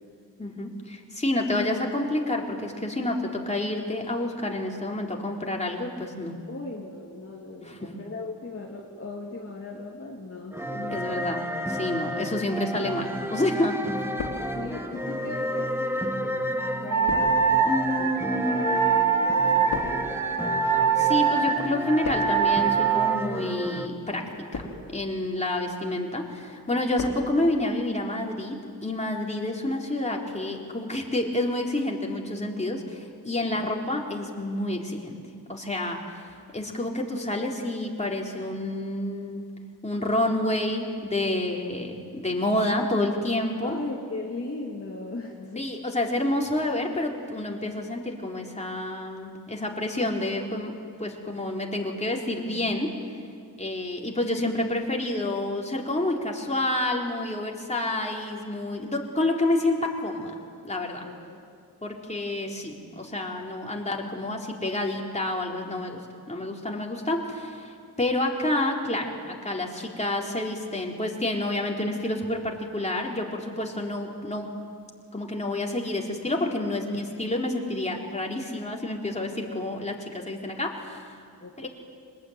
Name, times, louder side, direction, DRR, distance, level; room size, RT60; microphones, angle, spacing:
voice 1, 0.4-6.3 7.7-7.9 10.9-11.4 11.7-13.8 17.6-18.7 21.0-35.2 35.5-39.5 39.8-43.8 45.6-50.7 51.0-52.9 53.6-60.4 60.6-61.1 61.8-74.6 75.1-81.2 81.6-81.7, left 1 dB, 20° left, 0 dB, 4.1 m, -29 dB
voice 2, 6.5-11.3 14.4-20.2 33.5-33.7 43.6-45.7 61.0-61.4 81.4-81.7, left 2 dB, 35° left, -2 dB, 2.9 m, -38 dB
sound 1, 10.5-23.9, equal, 5° right, 1.8 m, -32 dB
sound 2, 13.0-13.6 13.9-14.9 15.7-21.3 21.6-22.6 23.3-23.6 24.2-25.0 25.5-25.9 26.3-27.3 27.5-27.6, left 4 dB, 80° left, 4.0 m, -39 dB
Wind instrument woodwind instrument, 16.9-23.2, right 6 dB, 60° right, 2.4 m, -24 dB
25.0 x 20.5 x 9.6 m, 2.3 s
cardioid pair, 80°, 37 cm